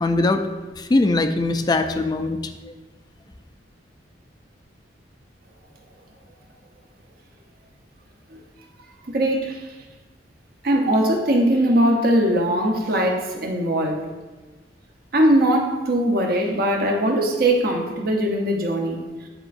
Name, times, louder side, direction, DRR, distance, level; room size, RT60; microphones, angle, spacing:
voice 1, 0.0-0.4 0.8-2.4, left 2 dB, 25° left, 7 dB, 0.4 m, -21 dB
voice 2, 9.1-9.7 10.6-14.1 15.1-19.1, right 1 dB, 55° right, 2 dB, 0.8 m, -20 dB
9.8 x 4.1 x 2.6 m, 1.2 s
head